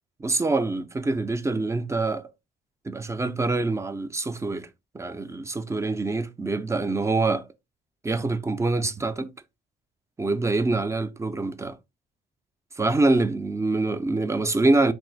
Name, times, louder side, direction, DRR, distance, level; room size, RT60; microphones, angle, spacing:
voice 1, 0.2-2.3 2.9-4.7 4.9-7.5 8.0-9.3 10.2-11.8 12.8-14.9, right 3 dB, 15° right, 0.4 m, -25 dB
3.1 x 2.6 x 3.1 m
cardioid pair, 90°, 20 cm